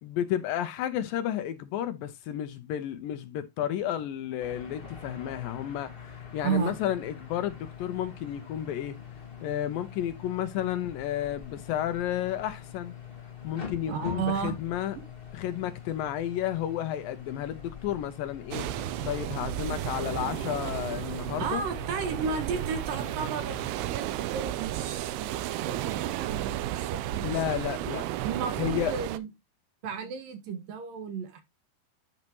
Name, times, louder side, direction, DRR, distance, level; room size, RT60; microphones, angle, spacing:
voice 1, 0.0-9.0 9.4-13.0 13.4-15.0 15.3-21.6 27.2-28.1 28.6-28.9, left 11 dB, 75° left, 2.3 m, -32 dB
sound 1, 4.4-23.7, left 7 dB, 50° left, 0.6 m, -44 dB
voice 2, 6.4-6.8 13.9-14.6 15.0-15.1 21.4-24.1 24.3-27.6 28.2-29.3 29.8-31.4, right 6 dB, 70° right, 2.9 m, -33 dB
sound 2, 18.5-29.2, right 13 dB, 90° right, 2.7 m, -33 dB
11.0 x 5.6 x 3.0 m
omnidirectional pair, 4.4 m